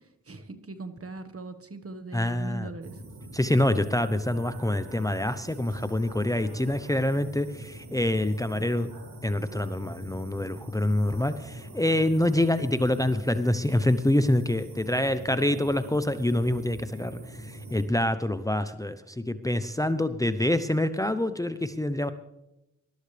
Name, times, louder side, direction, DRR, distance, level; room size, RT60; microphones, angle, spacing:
voice 1, 0.3-3.0, right 3 dB, 45° right, 9 dB, 1.5 m, -40 dB
voice 2, 2.1-2.7 3.3-8.9 9.2-22.1, left 1 dB, 10° left, 12 dB, 0.7 m, -26 dB
sound 1, 2.8-17.9, right 1 dB, 85° right, 2.6 m, -44 dB
20.0 x 12.5 x 3.4 m, 0.91 s
cardioid pair, 45°, 33 cm